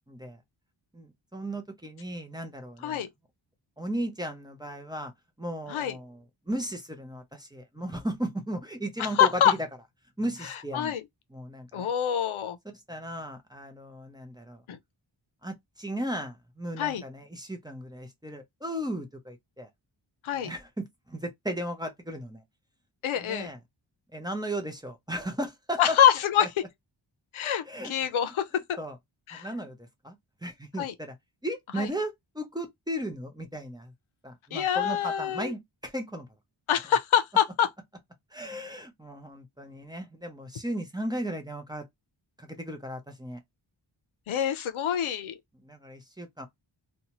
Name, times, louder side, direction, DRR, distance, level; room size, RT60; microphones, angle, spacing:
voice 1, 0.1-0.4 0.9-3.1 3.8-5.1 5.4-9.7 10.2-10.9 11.3-11.9 12.7-14.6 15.4-19.7 20.3-22.4 23.2-23.6 24.1-26.0 26.4-26.5 27.6-27.9 28.2-28.3 28.8-29.0 29.3-30.2 30.4-31.1 31.4-33.9 34.2-36.3 38.3-41.8 42.4-43.4 45.5-46.5, right 1 dB, 10° right, 0.6 m, -36 dB
voice 2, 9.2-9.5 10.7-11.0 11.7-12.6 14.7-14.8 16.8-17.0 20.2-20.5 23.0-23.5 25.8-26.5 27.3-28.8 29.3-29.5 30.8-30.9 31.8-31.9 34.5-35.5 36.7-37.7 44.3-45.4, left 9 dB, 85° left, 0.6 m, -25 dB
2.7 x 2.2 x 2.9 m
wide cardioid pair, 130°, 47 cm